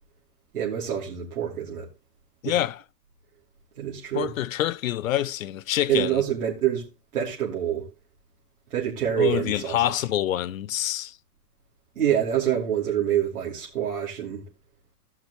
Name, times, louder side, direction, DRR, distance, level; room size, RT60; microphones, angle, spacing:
voice 1, 0.5-1.9 2.4-2.6 3.8-4.3 5.9-6.8 7.1-7.9 8.7-9.9 11.9-14.4, right 10 dB, 70° right, 3.2 m, -26 dB
voice 2, 2.4-2.8 4.1-6.2 9.2-11.2, left 12 dB, 60° left, 0.5 m, -26 dB
17.0 x 5.9 x 3.1 m
hypercardioid pair, 165°, 47 cm